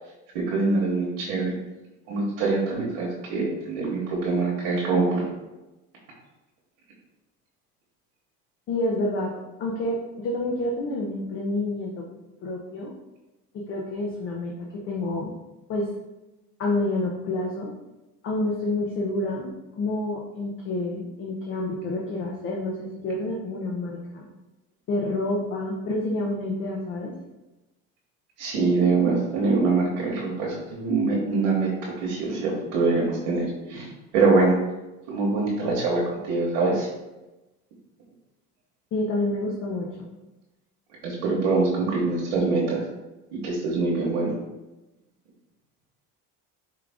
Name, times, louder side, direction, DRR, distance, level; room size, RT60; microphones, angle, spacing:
voice 1, 0.3-1.5 2.1-5.3 28.4-33.9 34.1-34.6 35.1-36.9 41.0-42.8 43.4-44.3, right 3 dB, 85° right, -4 dB, 1.1 m, -24 dB
voice 2, 8.7-9.3 9.6-12.0 12.4-12.9 13.5-15.3 15.7-15.9 16.6-17.7 18.2-24.2 24.9-27.1 38.9-40.2, left 2 dB, 40° left, -1 dB, 0.6 m, -28 dB
4.7 x 2.4 x 3.4 m, 1.0 s
cardioid pair, 140°, 32 cm